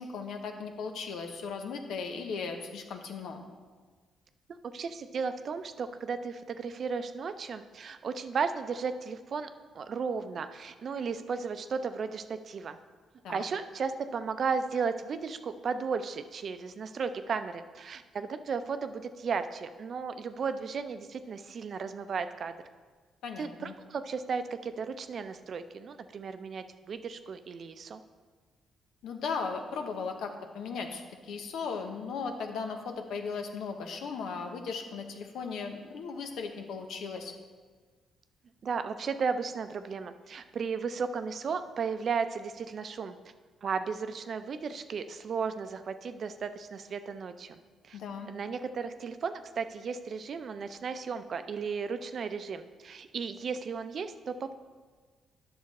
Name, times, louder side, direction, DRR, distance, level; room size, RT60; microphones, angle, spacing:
voice 1, 0.0-3.4 13.2-13.4 23.2-23.7 29.0-37.3 47.9-48.3, left 5 dB, 80° left, 4 dB, 0.9 m, -37 dB
voice 2, 4.7-9.5 9.7-12.8 13.3-22.5 23.4-28.0 38.6-43.2 43.6-48.0 48.3-54.5, right 5 dB, 55° right, 10 dB, 0.5 m, -35 dB
9.6 x 6.4 x 4.1 m, 1.5 s
cardioid pair, 85°, 0 cm